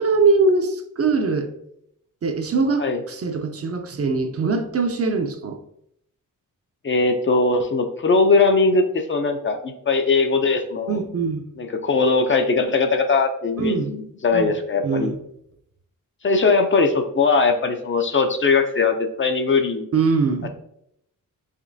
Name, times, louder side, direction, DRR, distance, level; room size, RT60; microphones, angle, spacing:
voice 1, 0.0-1.5 2.2-5.6 10.9-11.4 13.6-13.9 14.3-14.5 14.8-15.2 19.9-20.5, right 4 dB, 45° right, 6 dB, 0.5 m, -22 dB
voice 2, 6.8-11.0 11.6-15.1 16.2-19.9, left 4 dB, 40° left, 5 dB, 0.4 m, -20 dB
5.0 x 3.1 x 2.6 m, 0.74 s
wide cardioid pair, 120°, 33 cm